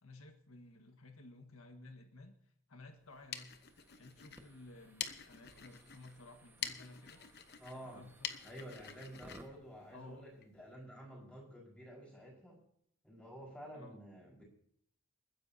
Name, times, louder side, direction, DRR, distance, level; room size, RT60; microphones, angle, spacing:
voice 1, 0.0-2.3 2.7-3.5 3.9-7.2 7.7-8.5 9.9-10.3 13.7-14.0, left 2 dB, 85° left, 5 dB, 1.6 m, -55 dB
sound 1, 3.0-10.5, left 8 dB, 50° left, 1.0 m, -48 dB
sound 2, 3.4-9.5, right 1 dB, 10° right, 1.4 m, -61 dB
voice 2, 7.6-8.1 8.4-12.6 13.0-14.4, equal, 5° left, -4 dB, 4.9 m, -51 dB
29.0 x 10.0 x 2.8 m, 0.65 s
head